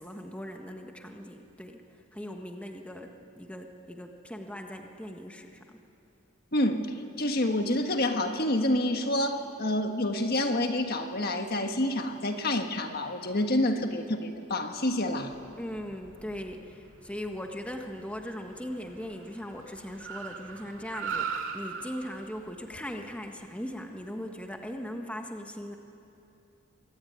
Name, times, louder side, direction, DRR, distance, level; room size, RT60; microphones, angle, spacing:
voice 1, 0.0-1.8 2.1-5.8 15.6-25.8, equal, 5° left, 3 dB, 1.5 m, -39 dB
voice 2, 6.5-15.4, left 1 dB, 45° left, 5 dB, 1.5 m, -28 dB
Car, 15.2-24.7, right 6 dB, 65° right, 2.2 m, -42 dB
24.0 x 24.0 x 9.5 m, 2.8 s
head